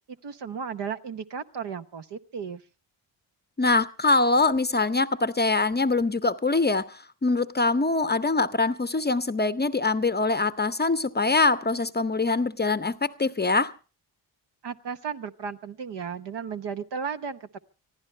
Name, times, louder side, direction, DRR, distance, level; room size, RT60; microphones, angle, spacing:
voice 1, 0.2-2.6 14.6-17.6, right 6 dB, 60° right, 1.1 m, -34 dB
voice 2, 3.6-13.7, left 3 dB, 20° left, 0.7 m, -24 dB
24.5 x 15.0 x 3.3 m
supercardioid pair, 50°, 48 cm